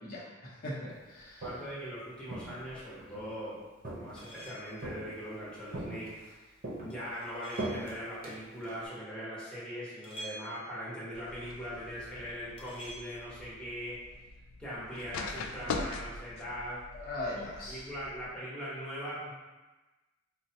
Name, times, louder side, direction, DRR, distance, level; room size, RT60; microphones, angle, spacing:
voice 1, 0.0-1.4 16.9-17.8, left 1 dB, 45° left, -6 dB, 0.9 m, -40 dB
Walk footsteps, 1.2-1.8 2.3-3.3 3.8-4.4 4.8-5.4 5.7-6.3 6.6-8.9, right 2 dB, 45° right, 0.7 m, -41 dB
voice 2, 1.4-3.6 3.9-14.0 14.6-16.8 17.2-17.3 17.7-19.3, equal, 5° left, -10 dB, 1.0 m, -41 dB
sound 1, 4.1-4.9 6.9-8.0 10.0-10.9 12.6-13.1, right 1 dB, 25° left, 0.5 m, -48 dB
sound 2, 11.1-18.3, left 4 dB, 90° left, 0.3 m, -42 dB
4.5 x 2.2 x 2.8 m, 1.2 s
head